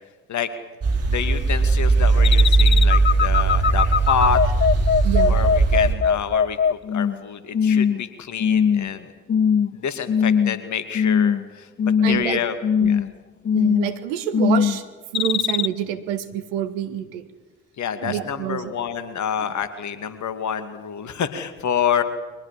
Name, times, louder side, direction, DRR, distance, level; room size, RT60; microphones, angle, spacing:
sound 1, 0.8-5.9, right 3 dB, 40° right, 5.1 m, -18 dB
voice 1, 1.1-4.4 5.2-9.1 9.7-12.6 12.9-13.1 17.8-22.0, left 8 dB, 50° left, 11 dB, 2.4 m, -27 dB
sound 2, 2.2-7.2 7.5-8.0 8.4-8.9 9.3-9.7 10.1-10.6 10.9-11.5 11.8-12.3 12.6-13.1 13.4-14.0 14.3-14.8 15.1-15.7, left 7 dB, 30° left, 0.8 m, -20 dB
voice 2, 5.0-5.3 12.0-12.4 12.8-12.9 13.5-14.8 15.1-17.2 18.0-18.7, right 11 dB, 70° right, 8 dB, 1.8 m, -27 dB
30.0 x 24.0 x 7.6 m, 1.3 s
figure-of-eight pair, 40°, 36 cm